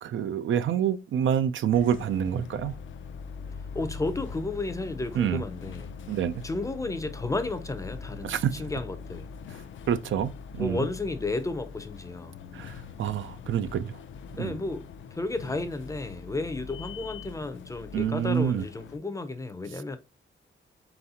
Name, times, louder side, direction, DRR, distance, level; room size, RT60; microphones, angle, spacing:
voice 1, 0.0-2.8 5.1-5.4 6.1-6.4 8.2-8.7 9.9-10.9 12.5-14.0 14.3-14.6 17.9-18.7 19.7-20.0, right 9 dB, 75° right, 0.5 m, -27 dB
sound 1, 1.7-19.0, left 5 dB, 75° left, 0.4 m, -42 dB
voice 2, 3.7-5.9 6.4-9.3 10.6-12.3 14.4-20.0, left 2 dB, 15° left, 0.5 m, -33 dB
4.2 x 4.0 x 2.8 m
wide cardioid pair, 170°, 20 cm